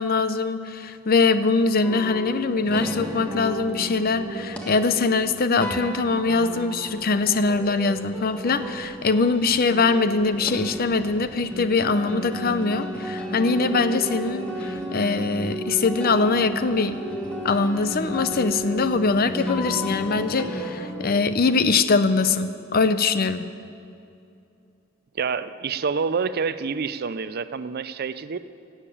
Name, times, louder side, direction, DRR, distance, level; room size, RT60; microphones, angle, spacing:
voice 1, 0.0-17.0 17.4-23.5, left 4 dB, 45° left, 12 dB, 0.6 m, -22 dB
sound 1, 1.8-21.2, equal, 5° left, 1.4 m, -33 dB
voice 2, 25.1-28.4, right 5 dB, 50° right, 13 dB, 0.5 m, -27 dB
17.0 x 7.4 x 8.5 m, 2.6 s
head